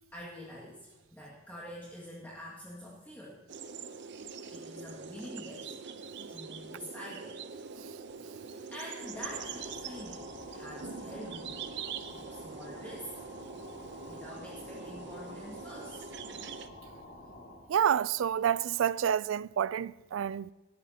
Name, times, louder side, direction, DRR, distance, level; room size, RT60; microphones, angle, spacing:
voice 1, 0.1-3.4 4.5-5.8 6.3-7.4 8.4-11.6 12.1-13.1 14.1-16.1, equal, 10° left, 2.1 m, -46 dB
sound 1, 3.5-16.7, right 5 dB, 60° right, 0.7 m, -43 dB
sound 2, 8.9-17.7, left 1 dB, 65° left, 5.0 m, -49 dB
voice 2, 17.7-20.5, right 9 dB, 85° right, 0.3 m, -29 dB
19.0 x 13.5 x 2.9 m
head